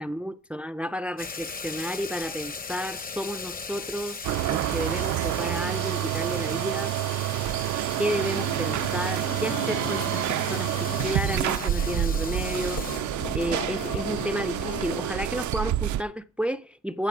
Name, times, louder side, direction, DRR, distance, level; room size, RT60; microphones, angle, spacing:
voice 1, 0.0-6.9 8.0-13.0 13.3-17.1, equal, 5° right, 0.5 m, -32 dB
sound 1, 1.2-13.0, left 5 dB, 30° left, 0.9 m, -39 dB
sound 2, 4.2-16.0, right 13 dB, 70° right, 0.5 m, -28 dB
sound 3, 8.0-15.1, left 11 dB, 80° left, 0.7 m, -38 dB
14.0 x 6.2 x 6.0 m
cardioid pair, 90°, 30 cm